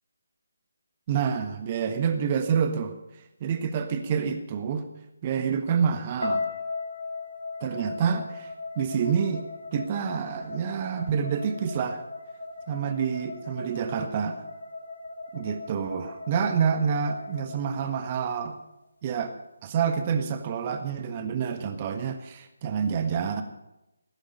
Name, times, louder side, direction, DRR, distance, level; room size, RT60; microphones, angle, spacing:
voice 1, 1.1-2.9 3.4-4.9 5.2-6.5 7.6-8.5 8.8-9.4 9.7-12.0 12.7-14.4 15.3-18.6 19.0-19.3 19.6-23.4, right 7 dB, 30° right, 8 dB, 1.4 m, -27 dB
sound 1, 6.2-18.4, left 3 dB, 75° left, 3.3 m, -38 dB
16.0 x 15.0 x 5.3 m, 0.93 s
figure-of-eight pair, 150°, 0 cm